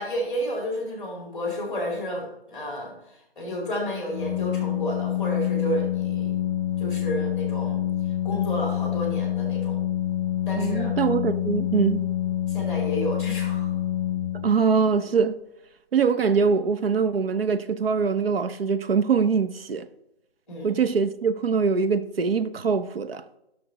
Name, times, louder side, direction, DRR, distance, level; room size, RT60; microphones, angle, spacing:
voice 1, 0.0-6.3 6.8-7.8 8.2-9.8 10.5-10.9 12.5-13.8 20.5-20.7, equal, ahead, 2.3 m, -31 dB
Organ, 4.1-14.9, left 11 dB, 30° left, 0.7 m, -27 dB
voice 2, 10.6-12.0 14.4-15.4 15.9-19.8 20.6-23.2, right 5 dB, 65° right, 0.8 m, -23 dB
11.0 x 6.1 x 3.0 m
hypercardioid pair, 165°, 31 cm